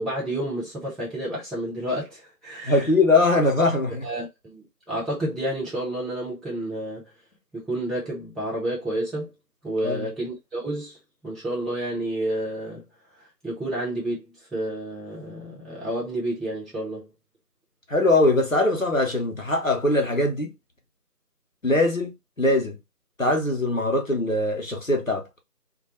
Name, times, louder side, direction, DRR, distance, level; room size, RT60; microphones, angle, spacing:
voice 1, 0.0-2.9 4.0-7.1 7.5-9.3 9.6-11.0 11.2-12.8 13.4-17.1, right 1 dB, ahead, 0.7 m, -30 dB
voice 2, 2.6-4.1 9.8-10.1 17.9-20.5 21.6-22.1 22.4-22.8 23.2-25.2, left 2 dB, 55° left, 0.7 m, -21 dB
2.2 x 2.2 x 2.8 m
figure-of-eight pair, 180°, 48 cm